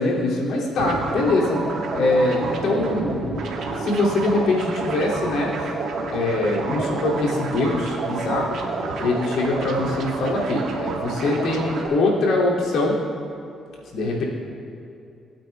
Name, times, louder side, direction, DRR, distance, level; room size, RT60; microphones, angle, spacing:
voice 1, 0.0-1.7 1.9-3.3 3.7-5.7 6.1-8.6 9.0-13.0 13.9-14.2, left 2 dB, 80° left, -4 dB, 2.5 m, -23 dB
sound 1, 0.8-11.9, right 3 dB, 75° right, 1.3 m, -29 dB
19.5 x 8.7 x 2.3 m, 2.7 s
cardioid pair, 90°, 0 cm